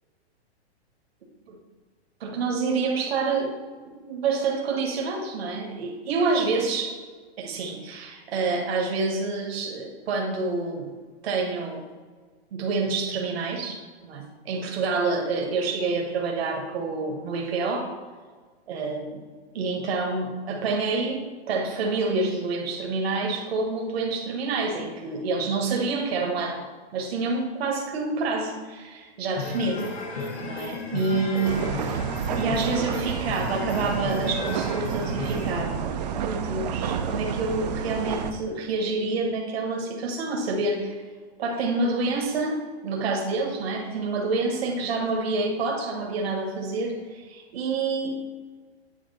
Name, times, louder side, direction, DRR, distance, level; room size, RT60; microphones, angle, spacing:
voice 1, 2.2-3.5 3.8-7.0 7.4-10.9 11.2-11.8 12.5-17.9 18.7-19.2 19.5-26.6 26.9-29.8 30.2-31.6 32.3-41.0 41.4-42.6 42.8-48.1, right 3 dB, 65° right, 1 dB, 1.2 m, -27 dB
sound 1, 29.4-35.6, left 3 dB, 80° left, 1.5 m, -34 dB
sound 2, 31.4-38.3, right 7 dB, 40° right, 0.4 m, -30 dB
8.5 x 3.0 x 3.9 m, 1.5 s
hypercardioid pair, 150°, 33 cm